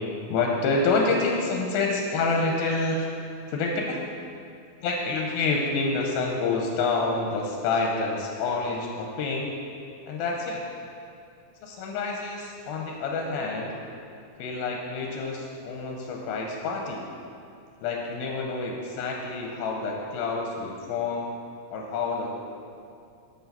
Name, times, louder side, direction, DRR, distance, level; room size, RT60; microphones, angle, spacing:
voice 1, 0.3-3.2 3.5-4.0 4.8-9.5 10.1-10.6 11.6-13.8 14.4-17.0 17.8-21.3 21.7-22.3, left 3 dB, 85° left, 0 dB, 2.5 m, -28 dB
7.2 x 5.9 x 5.6 m, 2.5 s
omnidirectional pair, 4.4 m